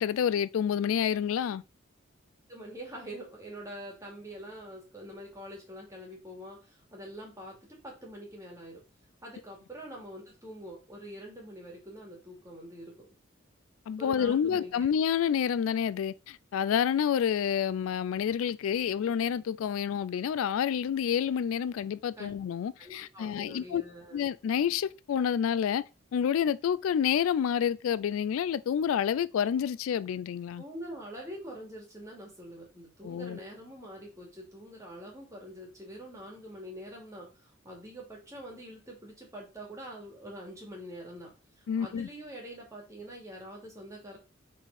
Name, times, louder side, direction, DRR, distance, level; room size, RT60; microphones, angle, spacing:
voice 1, 0.0-1.6 13.9-23.8 24.1-25.8 26.1-30.6 33.0-33.4 41.7-42.1, left 8 dB, 80° left, 0.3 m, -28 dB
voice 2, 2.5-7.6 7.8-8.8 9.2-13.2 14.0-14.7 22.1-22.3 22.8-24.2 30.6-44.2, equal, 15° right, 2.5 m, -45 dB
5.3 x 4.2 x 4.8 m
head